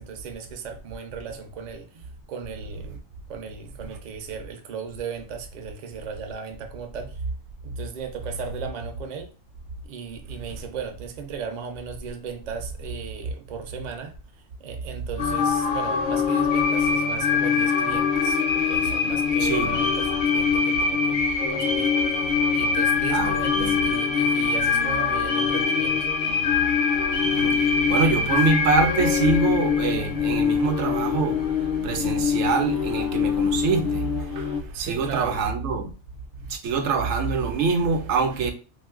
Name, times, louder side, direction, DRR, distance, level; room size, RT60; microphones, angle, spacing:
voice 1, 0.0-3.0 3.3-7.2 7.6-9.3 9.9-14.2 14.6-18.4 18.7-26.1 34.7-35.4, right 6 dB, 50° right, 0.5 m, -36 dB
sound 1, 15.2-34.6, left 6 dB, 55° left, 0.6 m, -23 dB
voice 2, 19.4-19.8 23.1-23.8 27.1-31.4 31.8-34.1 34.4-34.5 34.7-35.9 36.5-38.5, right 4 dB, 75° right, 0.9 m, -25 dB
2.6 x 2.4 x 3.6 m
omnidirectional pair, 1.2 m